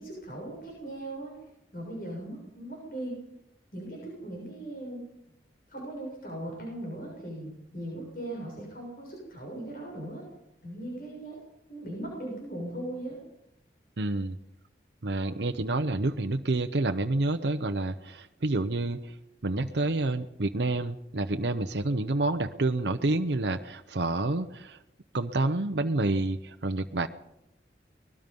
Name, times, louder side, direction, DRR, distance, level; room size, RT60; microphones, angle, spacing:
voice 1, 0.0-1.3 1.7-3.2 3.7-5.0 5.7-10.2 10.6-11.4 11.7-13.2, right 1 dB, 55° left, -2 dB, 6.9 m, -38 dB
voice 2, 14.0-14.4 15.0-19.1 19.4-24.8 25.1-27.1, right 2 dB, 80° right, 7 dB, 0.8 m, -28 dB
23.5 x 20.5 x 5.4 m, 0.86 s
head